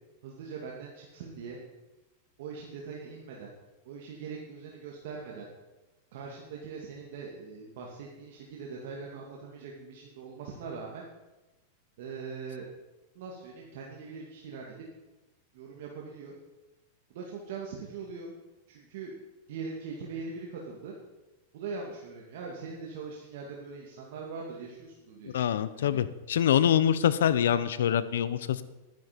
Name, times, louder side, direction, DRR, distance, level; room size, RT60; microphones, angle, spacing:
voice 1, 0.2-1.6 2.4-3.5 3.8-5.5 6.1-11.1 12.0-12.7 13.1-14.8 15.5-16.3 17.1-18.3 18.7-19.1 19.5-20.9 21.5-25.6, right 5 dB, 65° right, -1 dB, 2.3 m, -41 dB
voice 2, 25.2-28.6, left 9 dB, 85° left, 15 dB, 0.8 m, -25 dB
12.5 x 10.5 x 5.2 m, 1.1 s
supercardioid pair, 140°, 0 cm